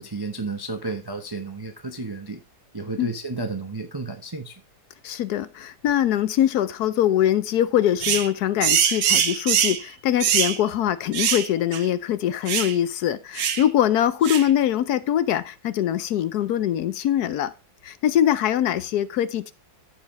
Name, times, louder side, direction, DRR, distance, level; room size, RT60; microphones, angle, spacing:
voice 1, 0.0-2.4 2.7-4.6, right 3 dB, 30° right, 0.4 m, -32 dB
voice 2, 5.0-17.5 17.8-19.5, left 11 dB, 65° left, 1.0 m, -23 dB
sound 1, 8.0-8.3 8.6-9.8 10.2-10.6 11.1-11.5 11.7-11.8 12.5-12.7 13.4-13.6 14.2-14.5, right 8 dB, 70° right, 1.6 m, -22 dB
14.5 x 5.0 x 3.1 m
omnidirectional pair, 2.1 m